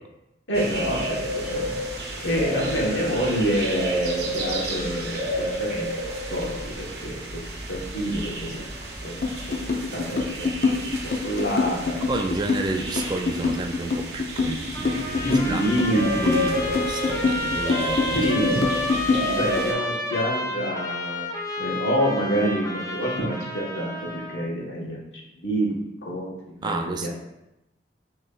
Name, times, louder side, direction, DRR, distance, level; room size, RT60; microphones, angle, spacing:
voice 1, 0.5-1.7 2.2-5.9 6.3-7.4 7.7-8.7 9.0-9.1 9.9-10.5 11.2-12.0 15.2-16.5 18.1-21.2 21.6-25.0 25.4-27.1, equal, 90° left, -3 dB, 1.2 m, -27 dB
sound 1, 0.5-19.7, equal, 60° right, 0.8 m, -31 dB
sound 2, 9.2-19.7, left 4 dB, 55° left, 0.6 m, -25 dB
voice 2, 12.1-15.6 15.9-18.3 26.6-27.1, right 2 dB, 25° right, 4 dB, 0.3 m, -31 dB
Trumpet, 14.7-24.4, left 1 dB, 20° left, 0.6 m, -31 dB
6.6 x 3.0 x 2.4 m, 0.91 s
head